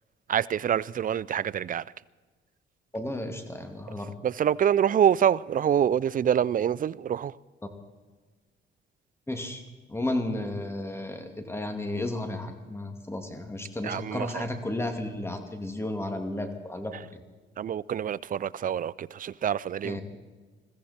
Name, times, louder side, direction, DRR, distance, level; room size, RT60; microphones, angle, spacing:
voice 1, 0.3-1.8 4.2-7.3 13.8-14.5 17.6-20.0, right 9 dB, 45° right, 0.5 m, -26 dB
voice 2, 2.9-4.1 9.3-9.6 9.9-17.2 19.8-20.0, left 1 dB, 10° left, 2.5 m, -33 dB
21.5 x 15.5 x 4.4 m
cardioid pair, 90°, 20 cm